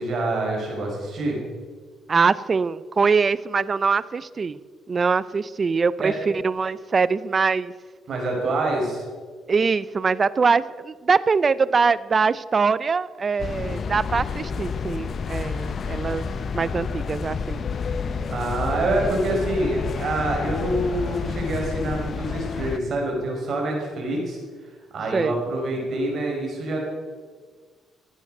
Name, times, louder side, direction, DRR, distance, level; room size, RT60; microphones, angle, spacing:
voice 1, 0.0-1.4 6.0-6.1 8.1-9.1 18.3-24.4 24.9-26.9, right 2 dB, 60° right, 0 dB, 5.5 m, -26 dB
voice 2, 2.1-4.6 4.9-7.7 9.5-16.2 16.5-17.6 25.1-25.4, right 5 dB, 40° right, 18 dB, 0.6 m, -23 dB
sound 1, 13.4-22.8, left 5 dB, 50° left, 0.7 m, -29 dB
15.5 x 9.3 x 6.5 m, 1.5 s
cardioid pair, 90°, 0 cm